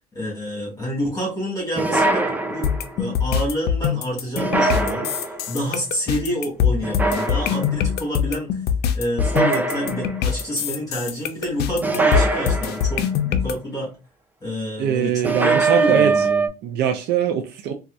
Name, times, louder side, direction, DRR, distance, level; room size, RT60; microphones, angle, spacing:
voice 1, 0.1-2.7 3.0-8.6 8.9-13.9 14.4-16.5, equal, 20° left, 1.8 m, -28 dB
sound 1, 1.8-3.0 4.4-5.5 6.8-7.8 9.2-10.4 11.8-13.2 15.2-16.5, right 3 dB, 10° right, 0.4 m, -22 dB
sound 2, 2.6-13.5, left 8 dB, 75° left, 0.5 m, -23 dB
voice 2, 14.8-16.3 16.6-17.7, right 8 dB, 75° right, 0.5 m, -22 dB
4.0 x 2.4 x 2.5 m
cardioid pair, 110°, 17 cm